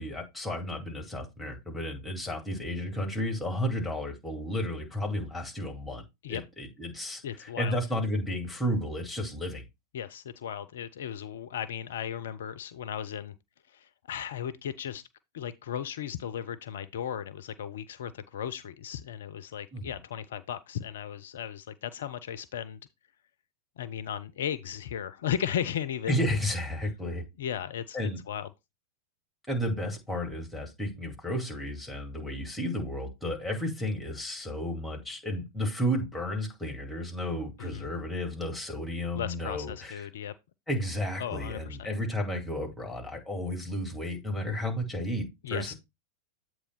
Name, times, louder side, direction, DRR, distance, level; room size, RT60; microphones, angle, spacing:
voice 1, 0.0-9.6 19.7-19.9 26.1-27.2 27.9-28.2 29.5-40.0 40.7-45.7, equal, ahead, 2.4 m, -32 dB
voice 2, 7.2-7.8 9.9-13.3 13.7-15.0 15.3-22.8 23.8-26.2 27.4-28.5 37.6-37.9 39.1-40.3 41.2-41.9 45.4-45.7, left 9 dB, 60° left, 0.4 m, -36 dB
8.1 x 3.0 x 5.7 m
figure-of-eight pair, 90°, 0 cm